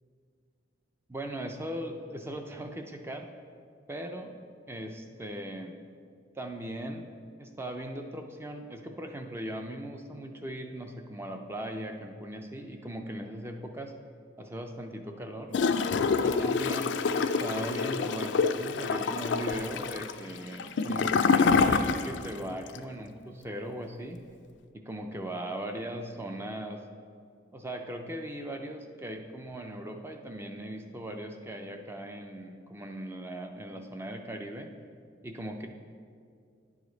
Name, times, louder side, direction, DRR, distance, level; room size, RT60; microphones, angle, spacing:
voice 1, 1.1-3.3 3.9-4.4 4.7-5.8 6.3-7.1 7.4-13.9 14.4-15.5 16.2-24.2 24.7-26.8 27.5-34.7 35.2-35.7, right 1 dB, 15° right, 4 dB, 0.3 m, -39 dB
Gurgling / Toilet flush, 15.5-22.4 22.7-22.8, left 5 dB, 70° left, 0.3 m, -26 dB
9.9 x 4.9 x 3.9 m, 2.3 s
head